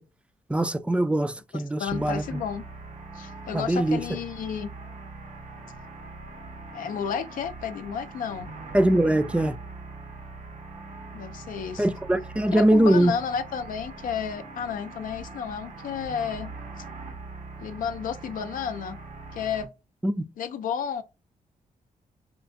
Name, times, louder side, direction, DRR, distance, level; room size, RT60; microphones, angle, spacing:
voice 1, 0.5-2.4 3.5-4.0 8.7-9.6 11.8-13.2 20.0-20.2, right 1 dB, 10° right, 0.3 m, -22 dB
voice 2, 1.5-2.6 3.1-4.7 6.7-8.5 11.1-11.9 12.5-16.5 17.6-19.0 19.3-19.7 20.4-21.0, left 7 dB, 80° left, 0.4 m, -32 dB
sound 1, 1.9-19.6, right 3 dB, 65° right, 0.9 m, -42 dB
4.4 x 2.3 x 2.5 m
cardioid pair, 105°, 14 cm